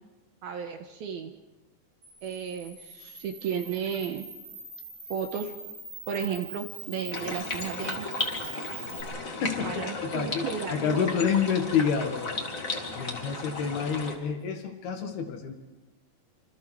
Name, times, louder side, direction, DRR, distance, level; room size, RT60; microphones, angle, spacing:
voice 1, 0.4-1.3 2.2-4.2 5.1-5.5 6.1-8.0 9.6-11.0, right 7 dB, 70° right, 6 dB, 2.7 m, -33 dB
Camera, 2.0-9.0, right 2 dB, 30° right, 6.7 m, -43 dB
sound 1, 7.1-14.1, left 3 dB, 25° left, 1.8 m, -35 dB
voice 2, 9.2-12.4 12.9-15.5, left 7 dB, 65° left, 3 dB, 3.7 m, -28 dB
27.0 x 26.5 x 4.7 m, 1.1 s
omnidirectional pair, 5.1 m